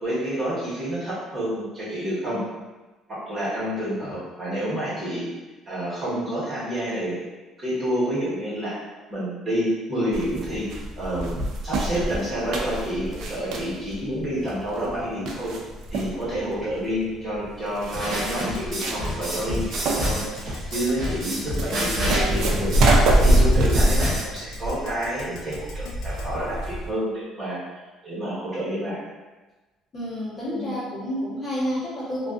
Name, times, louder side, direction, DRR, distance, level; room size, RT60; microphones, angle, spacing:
voice 1, 0.0-2.4 3.1-5.2 5.7-7.2 7.6-8.8 9.1-10.7 11.0-11.3 11.6-15.5 15.9-20.2 20.7-22.7 23.2-27.6 28.0-29.0 30.5-30.7, equal, 25° right, -10 dB, 1.1 m, -28 dB
sound 1, 10.1-26.9, right 1 dB, 65° right, 0.3 m, -25 dB
sound 2, 17.9-24.2, equal, 45° right, 0.7 m, -28 dB
Keyboard (musical), 18.4-26.3, left 5 dB, 85° left, 0.4 m, -42 dB
voice 2, 29.9-32.3, equal, 30° left, -9 dB, 0.9 m, -29 dB
2.4 x 2.3 x 2.3 m, 1.2 s
cardioid pair, 145°, 0 cm